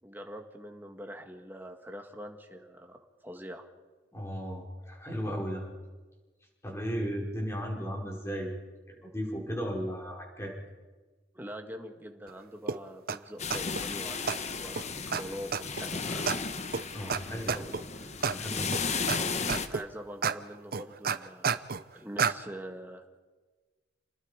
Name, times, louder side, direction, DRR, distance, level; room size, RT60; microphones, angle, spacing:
voice 1, 0.0-3.7 11.3-16.3 19.7-21.7 21.9-23.2, equal, 10° right, 4 dB, 1.9 m, -44 dB
voice 2, 4.1-5.7 6.6-8.5 8.9-10.5 16.9-17.7 18.2-18.8, equal, 15° left, -1 dB, 5.1 m, -35 dB
sound 1, 12.7-12.8 13.1-13.2 13.5-13.8 14.3-14.4 14.8-14.9 15.1-15.2 15.5-15.8 16.3-16.4 16.7-16.8 17.1-17.2 17.5-17.8 18.2-18.3 18.7-19.2 19.5-19.8 20.2-20.3 20.7-21.8 22.2-22.3, right 6 dB, 55° right, 0.8 m, -29 dB
sound 2, 13.4-19.7, left 4 dB, 40° left, 1.2 m, -34 dB
29.0 x 20.5 x 5.0 m, 1.3 s
head